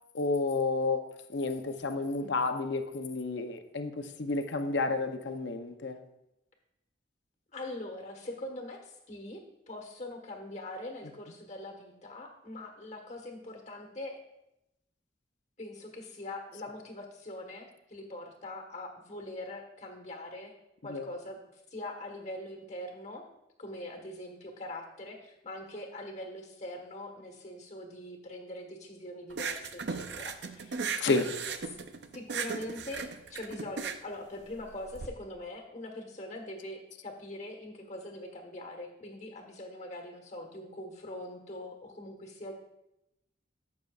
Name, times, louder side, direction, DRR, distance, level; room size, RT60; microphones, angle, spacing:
voice 1, 0.1-1.0 1.3-6.0 20.9-21.1 31.0-31.3, left 3 dB, 65° left, 7 dB, 0.6 m, -31 dB
voice 2, 7.5-14.2 15.6-20.5 20.8-21.4 21.7-23.2 23.6-31.0 32.1-42.5, left 1 dB, 35° left, 3 dB, 1.3 m, -42 dB
sound 1, 29.3-35.1, right 5 dB, 60° right, 0.5 m, -37 dB
14.0 x 6.7 x 2.4 m, 0.88 s
head